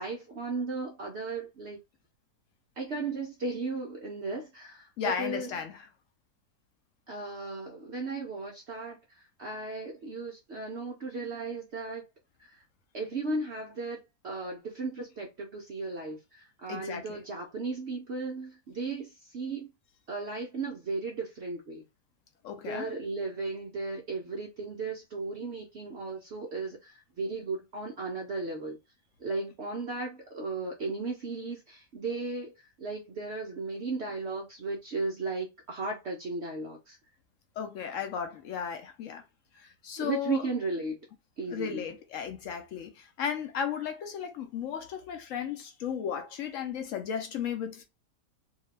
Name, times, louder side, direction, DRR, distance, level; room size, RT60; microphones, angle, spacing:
voice 1, 0.0-1.8 2.8-5.5 7.1-12.0 12.4-12.6 12.9-19.7 20.1-21.8 22.6-28.8 29.2-37.0 40.0-41.1 41.4-41.8, right 3 dB, 65° right, 0.6 m, -36 dB
voice 2, 5.0-5.8 16.7-17.2 22.4-22.9 37.6-39.2 39.5-40.4 41.5-47.8, left 8 dB, 70° left, 0.7 m, -35 dB
2.7 x 2.3 x 3.1 m
omnidirectional pair, 1.8 m